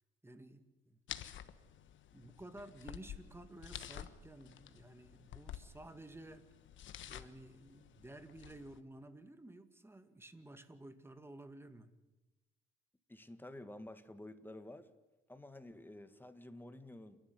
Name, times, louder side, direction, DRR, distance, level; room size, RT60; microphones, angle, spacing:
voice 1, 0.2-1.0 2.1-6.4 7.1-11.9, right 1 dB, 10° right, 9 dB, 2.2 m, -53 dB
sound 1, 1.1-8.8, left 10 dB, 70° left, 1.3 m, -51 dB
voice 2, 13.1-14.9 15.3-17.2, left 1 dB, 10° left, 10 dB, 1.9 m, -51 dB
29.0 x 12.0 x 9.7 m, 1.1 s
cardioid pair, 90°, 20 cm